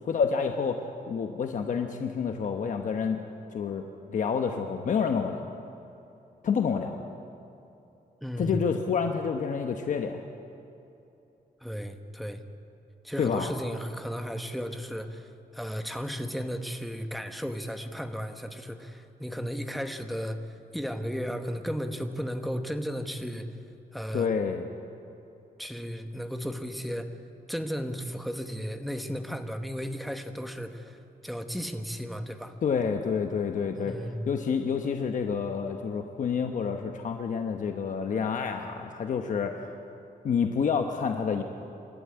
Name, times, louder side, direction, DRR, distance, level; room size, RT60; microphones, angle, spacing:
voice 1, 0.0-3.2 3.5-3.8 4.1-5.5 6.4-7.0 8.4-10.2 13.2-13.5 24.1-24.7 32.6-33.9 34.3-39.7 40.2-41.4, left 6 dB, 55° left, 5 dB, 1.0 m, -28 dB
voice 2, 8.2-8.7 11.6-12.4 13.0-23.5 23.9-24.4 25.6-27.1 27.5-32.5 33.8-34.2, equal, ahead, 6 dB, 1.1 m, -34 dB
27.0 x 12.5 x 9.6 m, 2.9 s
wide cardioid pair, 170°, 16 cm